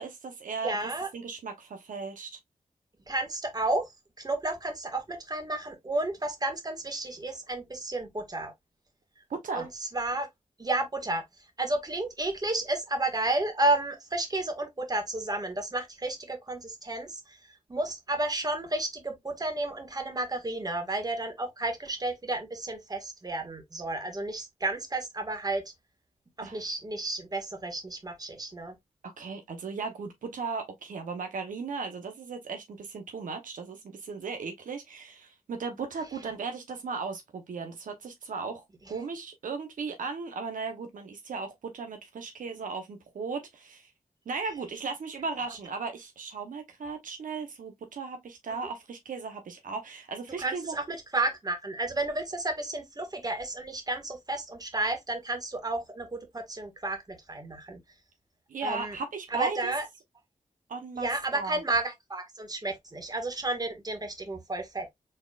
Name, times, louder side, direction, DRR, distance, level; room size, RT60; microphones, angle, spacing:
voice 1, 0.0-2.4 9.3-9.7 26.4-26.6 29.0-38.6 38.9-43.9 44.3-50.7 58.5-59.7 60.7-61.6, right 4 dB, 75° right, 0.9 m, -36 dB
voice 2, 0.6-1.1 3.1-3.9 4.2-8.5 9.5-9.7 9.9-10.3 10.6-11.2 11.6-17.4 17.7-25.6 26.4-28.7 50.4-57.8 58.6-59.0 59.3-59.8 61.0-64.9, right 2 dB, 30° right, 1.6 m, -32 dB
4.4 x 3.5 x 2.4 m
cardioid pair, 55°, 14 cm